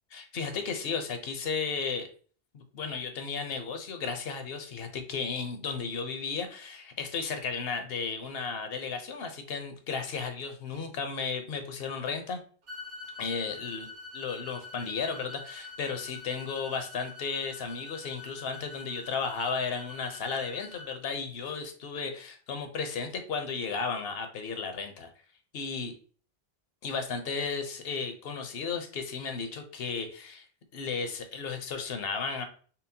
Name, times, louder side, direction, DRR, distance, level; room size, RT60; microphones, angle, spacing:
voice 1, 0.1-2.1 2.5-12.4 13.2-13.9 14.1-25.1 25.5-25.9 26.8-30.5 30.7-32.4, left 5 dB, 70° left, 7 dB, 0.9 m, -34 dB
sound 1, 12.7-21.0, left 4 dB, 65° right, 1.0 m, -46 dB
5.6 x 2.1 x 2.7 m, 0.43 s
omnidirectional pair, 1.0 m